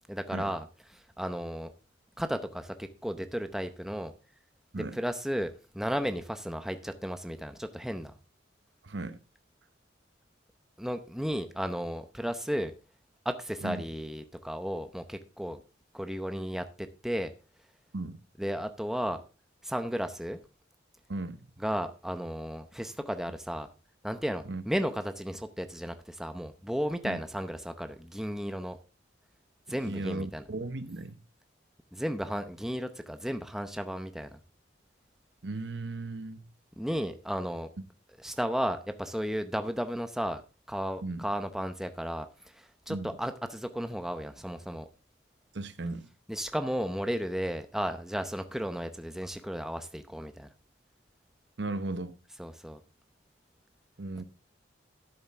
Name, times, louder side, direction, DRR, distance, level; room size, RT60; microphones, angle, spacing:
voice 1, 0.1-0.7 0.9-1.7 2.2-4.1 4.7-8.1 10.8-12.7 13.2-15.6 15.9-17.3 18.4-19.2 19.6-20.4 21.6-23.7 24.0-28.8 29.7-30.4 31.9-34.3 36.8-37.7 38.2-40.4 40.7-42.3 42.5-44.9 46.3-50.5 52.4-52.8, equal, ahead, 0.7 m, -34 dB
voice 2, 8.8-9.2 13.6-13.8 17.9-18.2 21.1-21.5 24.5-24.6 27.0-27.2 29.8-31.2 35.4-36.4 41.0-41.3 42.9-43.2 45.5-46.1 51.6-52.2 54.0-54.2, right 2 dB, 65° right, 0.9 m, -36 dB
12.5 x 7.3 x 3.6 m
head